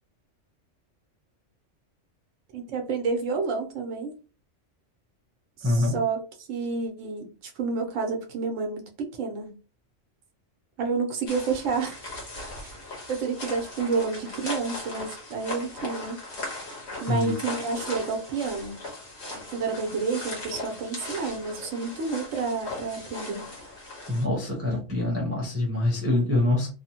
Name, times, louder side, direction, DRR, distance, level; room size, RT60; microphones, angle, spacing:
voice 1, 2.5-4.1 5.6-9.6 10.8-12.1 12.6-12.7 13.1-16.2 17.0-18.8 19.3-23.5, right 4 dB, 90° right, 4 dB, 1.1 m, -30 dB
voice 2, 5.6-6.0 17.1-17.3 24.1-26.7, left 1 dB, 15° right, -2 dB, 0.7 m, -25 dB
sound 1, 11.3-24.3, left 2 dB, 60° left, 1.4 m, -38 dB
3.1 x 2.1 x 2.8 m, 0.33 s
omnidirectional pair, 1.3 m